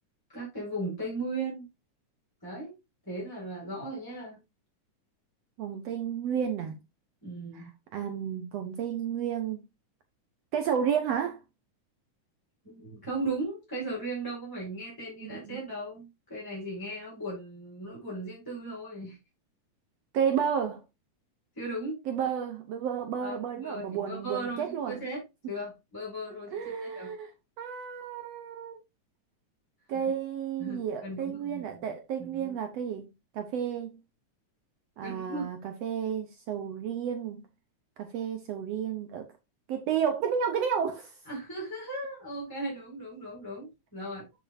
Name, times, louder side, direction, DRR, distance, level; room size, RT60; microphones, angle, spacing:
voice 1, 0.3-1.7 2.4-2.7 3.0-4.4 7.2-7.7 12.6-19.2 21.5-22.0 23.2-27.1 30.6-31.8 32.2-32.5 35.0-35.5 41.3-44.3, right 2 dB, 5° left, 4.1 m, -37 dB
voice 2, 5.6-6.8 7.5-9.6 10.5-11.4 15.2-15.6 20.1-20.8 22.1-25.0 26.5-27.3 27.6-28.7 29.9-33.1 33.3-34.0 35.0-37.4 38.0-39.3 39.7-41.2, right 8 dB, 70° right, 1.8 m, -31 dB
7.5 x 7.5 x 2.6 m
omnidirectional pair, 3.4 m